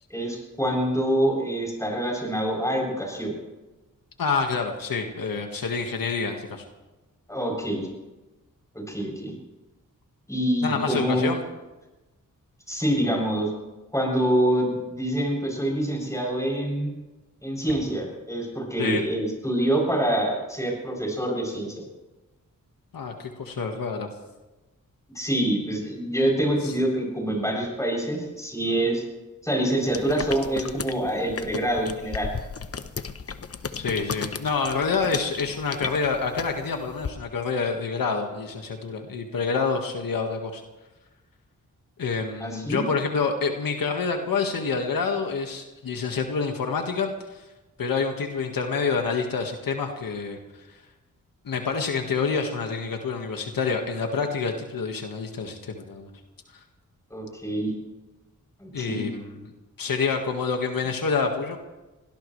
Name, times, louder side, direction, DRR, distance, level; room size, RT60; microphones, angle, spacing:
voice 1, 0.1-3.3 7.3-7.9 8.7-9.3 10.3-11.2 12.7-13.5 13.9-16.9 17.4-21.8 25.1-29.0 29.4-32.3 42.4-42.8 57.1-57.7 58.6-59.0, right 1 dB, 10° left, -1 dB, 7.8 m, -26 dB
voice 2, 4.2-6.6 10.6-11.4 18.8-19.0 22.9-24.1 26.6-26.7 33.8-40.6 42.0-47.4 47.8-50.4 50.7-50.8 51.5-56.1 58.7-59.3 59.8-61.6, left 5 dB, 85° left, 3 dB, 1.8 m, -27 dB
sound 1, 29.9-37.1, left 5 dB, 45° left, 1.0 m, -35 dB
24.5 x 17.5 x 3.3 m, 1.1 s
cardioid pair, 75°, 33 cm